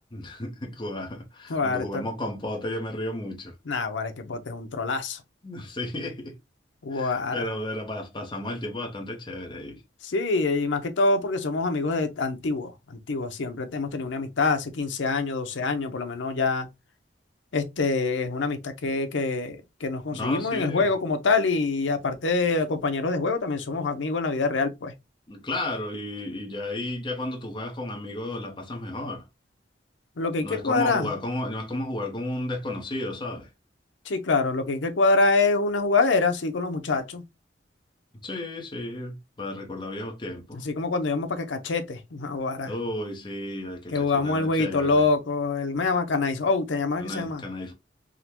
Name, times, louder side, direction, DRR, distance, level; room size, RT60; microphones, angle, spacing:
voice 1, 0.1-3.5 5.4-6.3 6.9-9.8 20.1-20.9 25.3-29.3 30.4-33.5 38.2-40.6 42.6-45.0 47.0-47.7, left 1 dB, 25° left, 0.8 m, -33 dB
voice 2, 1.5-2.1 3.7-5.2 6.8-7.4 10.0-16.7 17.5-24.9 30.2-31.1 34.1-37.2 40.5-42.7 43.9-47.4, left 3 dB, 90° left, 0.6 m, -25 dB
3.6 x 2.1 x 2.9 m
head